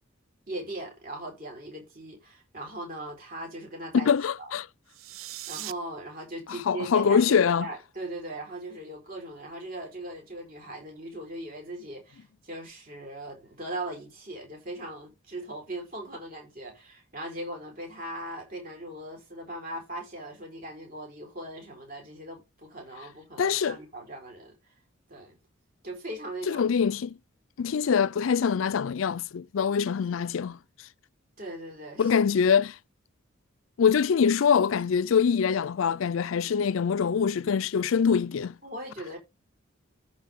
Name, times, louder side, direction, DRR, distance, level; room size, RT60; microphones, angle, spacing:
voice 1, 0.5-4.5 5.5-24.6 25.1-25.4 25.8-26.6 31.4-32.1 38.6-39.2, right 1 dB, 45° right, 4.2 m, -39 dB
voice 2, 3.9-4.7 6.5-7.7 23.4-23.8 26.5-27.2 27.6-30.6 32.0-32.8 33.8-38.5, left 6 dB, 75° left, 0.4 m, -24 dB
sound 1, 4.9-5.7, right 14 dB, 80° right, 0.5 m, -39 dB
14.0 x 4.7 x 3.6 m
head